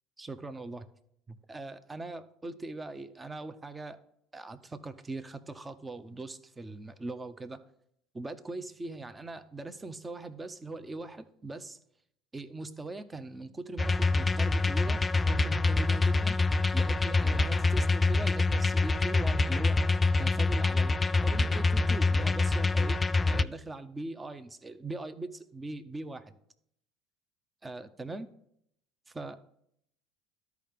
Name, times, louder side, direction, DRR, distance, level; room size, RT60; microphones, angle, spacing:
voice 1, 0.2-0.9 1.3-4.0 4.3-7.6 8.1-11.8 12.3-16.4 16.7-19.8 20.2-26.4 27.6-28.3 29.1-29.4, right 2 dB, 20° right, 12 dB, 0.7 m, -41 dB
sound 1, 13.8-23.4, left 3 dB, 20° left, 0.3 m, -26 dB
13.0 x 4.7 x 3.7 m, 0.72 s
hypercardioid pair, 70°, 0 cm